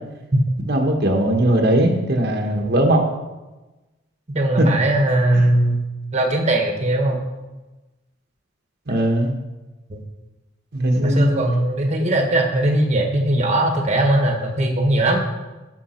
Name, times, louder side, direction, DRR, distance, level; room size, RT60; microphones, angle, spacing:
voice 1, 0.7-3.0 4.6-4.7 5.3-5.4 8.9-9.3 10.7-11.4, right 1 dB, 50° right, 2 dB, 1.2 m, -19 dB
voice 2, 4.3-5.9 6.1-7.2 9.9-10.0 11.0-15.3, right 1 dB, 30° right, 2 dB, 1.3 m, -19 dB
15.0 x 7.0 x 4.4 m, 1.1 s
head